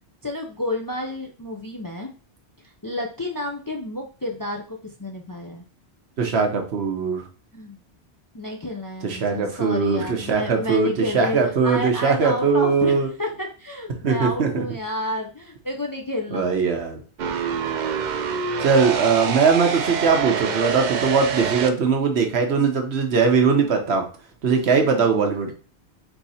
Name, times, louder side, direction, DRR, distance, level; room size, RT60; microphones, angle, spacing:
voice 1, 0.2-2.1 2.6-5.6 7.5-7.8 8.3-16.5 24.8-25.2, left 1 dB, 25° left, 1 dB, 0.5 m, -30 dB
voice 2, 6.2-7.2 9.0-13.1 14.0-14.5 16.3-17.0 18.6-24.1 24.4-25.5, right 5 dB, 75° right, 4 dB, 1.2 m, -20 dB
sound 1, 17.2-21.7, right 7 dB, 55° right, 0.5 m, -26 dB
4.5 x 2.7 x 4.1 m, 0.38 s
omnidirectional pair, 1.1 m